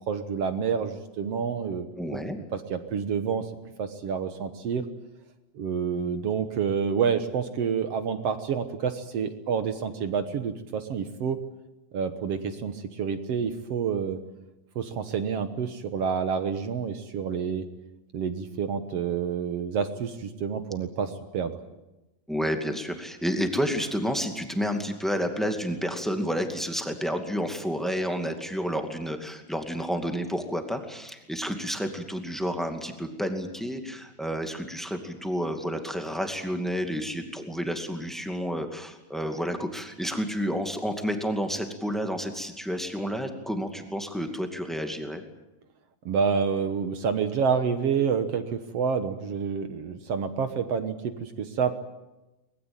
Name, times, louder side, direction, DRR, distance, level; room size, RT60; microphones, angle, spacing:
voice 1, 0.1-2.2 2.5-3.5 3.8-4.8 5.5-11.4 11.9-14.2 14.7-17.7 18.1-21.6 46.0-51.7, right 6 dB, 60° right, 9 dB, 1.7 m, -28 dB
voice 2, 2.0-2.4 22.3-45.2, equal, ahead, 5 dB, 1.3 m, -30 dB
24.0 x 20.5 x 8.9 m, 1.0 s
omnidirectional pair, 4.2 m